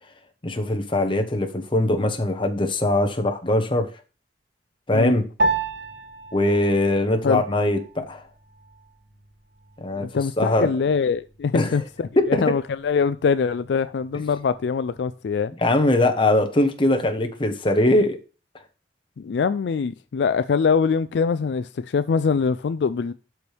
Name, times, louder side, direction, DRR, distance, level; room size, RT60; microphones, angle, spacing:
voice 1, 0.4-3.9 4.9-5.3 6.3-8.2 9.8-10.7 11.5-11.8 12.3-12.5 15.6-18.2, left 1 dB, 30° left, 1.0 m, -21 dB
Piano, 5.4-15.0, right 2 dB, 70° right, 1.0 m, -33 dB
voice 2, 10.0-15.5 19.2-23.1, left 5 dB, 75° left, 0.4 m, -23 dB
12.0 x 4.6 x 3.3 m
head